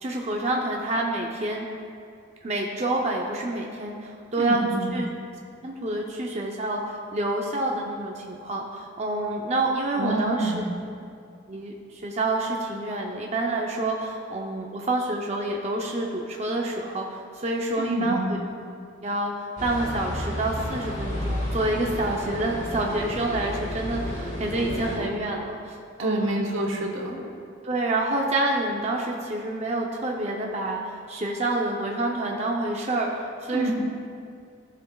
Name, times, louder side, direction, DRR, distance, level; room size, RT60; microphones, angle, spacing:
voice 1, 0.0-1.7 2.4-4.6 4.9-5.1 5.6-10.5 11.5-11.7 12.0-18.4 19.0-26.4 27.6-33.7, right 2 dB, 35° right, -1 dB, 0.6 m, -28 dB
voice 2, 4.4-4.9 10.0-10.8 17.8-18.3 26.0-27.2 33.5-33.7, right 1 dB, 80° right, 1 dB, 1.3 m, -27 dB
sound 1, 19.6-25.0, equal, 35° left, 1.6 m, -32 dB
15.5 x 5.9 x 2.3 m, 2.4 s
head